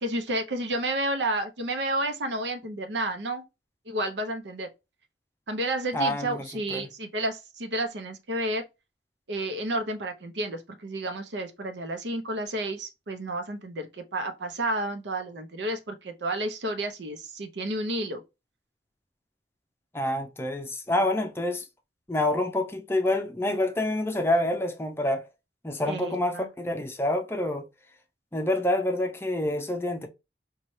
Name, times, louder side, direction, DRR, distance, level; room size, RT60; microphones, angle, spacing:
voice 1, 0.0-3.4 3.9-4.7 5.5-8.7 9.3-18.2 25.9-26.5, right 1 dB, 85° right, 0.7 m, -31 dB
voice 2, 5.9-6.9 19.9-21.6 22.1-25.3 25.6-27.7 28.3-30.1, left 1 dB, 15° left, 0.5 m, -27 dB
4.1 x 2.3 x 3.1 m
head